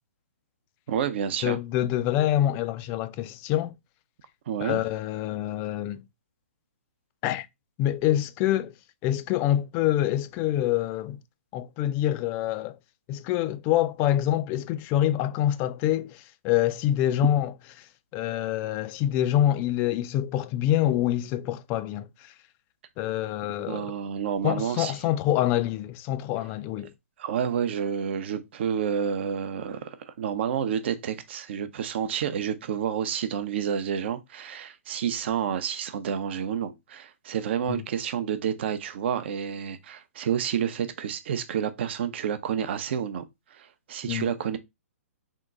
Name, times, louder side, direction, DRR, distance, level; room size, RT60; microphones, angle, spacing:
voice 1, 0.9-1.6 4.5-4.8 23.6-24.9 27.2-43.2 43.5-44.6, right 8 dB, 50° right, 0.6 m, -29 dB
voice 2, 1.4-3.7 4.6-6.0 7.2-7.5 7.8-8.7 9.0-11.2 11.5-12.8 13.1-17.5 18.1-22.1 23.0-23.9 24.4-26.9 37.7-37.8 44.1-44.3, left 12 dB, 25° left, 0.3 m, -26 dB
3.7 x 2.2 x 3.7 m
figure-of-eight pair, 125°, 8 cm